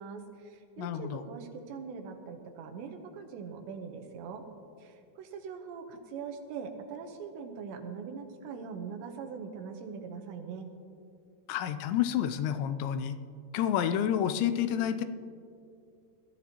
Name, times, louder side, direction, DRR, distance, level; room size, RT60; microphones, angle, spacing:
voice 1, 0.0-4.4 4.8-10.7, right 6 dB, 80° right, 5 dB, 3.2 m, -42 dB
voice 2, 0.8-1.2 11.5-13.2 13.5-15.1, left 10 dB, 90° left, 10 dB, 2.9 m, -29 dB
21.0 x 13.5 x 2.9 m, 2.5 s
omnidirectional pair, 5.1 m